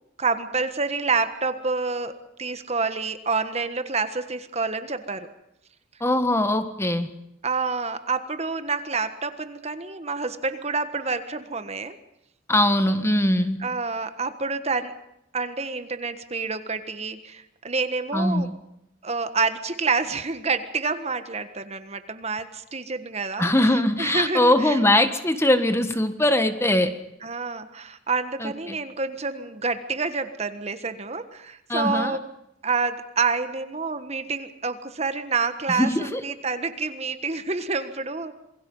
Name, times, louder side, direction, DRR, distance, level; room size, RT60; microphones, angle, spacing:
voice 1, 0.2-5.3 7.4-12.0 13.6-14.9 15.3-18.5 19.0-23.5 24.0-24.8 27.2-32.2 32.6-38.4, right 4 dB, 35° right, 10 dB, 1.4 m, -28 dB
voice 2, 6.0-7.1 12.5-13.6 18.1-18.5 23.4-26.9 28.4-28.8 31.7-32.2 35.7-36.2, left 1 dB, 15° left, 9 dB, 1.5 m, -21 dB
27.5 x 22.0 x 5.5 m, 0.81 s
head